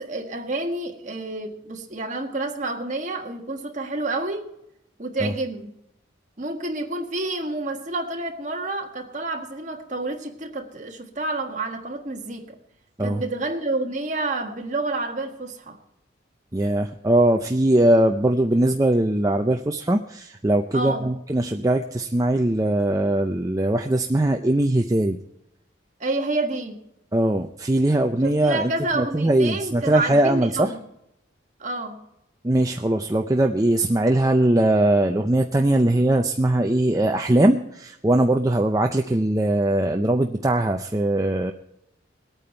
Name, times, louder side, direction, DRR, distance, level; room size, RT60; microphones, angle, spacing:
voice 1, 0.0-4.5 5.0-5.7 6.4-12.6 13.0-15.8 20.7-21.1 26.0-26.8 28.2-30.8 31.6-32.0, right 2 dB, 40° right, 1.7 m, -29 dB
voice 2, 16.5-25.2 27.1-30.7 32.4-41.5, right 1 dB, 20° right, 0.5 m, -21 dB
21.0 x 9.0 x 4.5 m
head